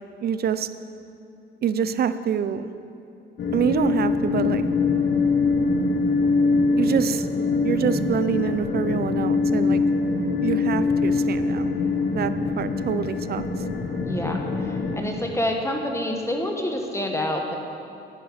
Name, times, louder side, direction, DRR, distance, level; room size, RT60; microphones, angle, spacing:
voice 1, 0.2-0.7 1.6-2.7 3.5-4.6 6.8-7.3 7.6-9.8 10.4-11.7 12.1-13.4, right 8 dB, 50° right, 12 dB, 0.5 m, -26 dB
sound 1, 3.4-15.0, left 4 dB, 60° left, 1.2 m, -23 dB
voice 2, 14.0-17.6, left 1 dB, 15° left, 2 dB, 1.2 m, -27 dB
11.0 x 9.1 x 4.9 m, 2.8 s
cardioid pair, 90°, 20 cm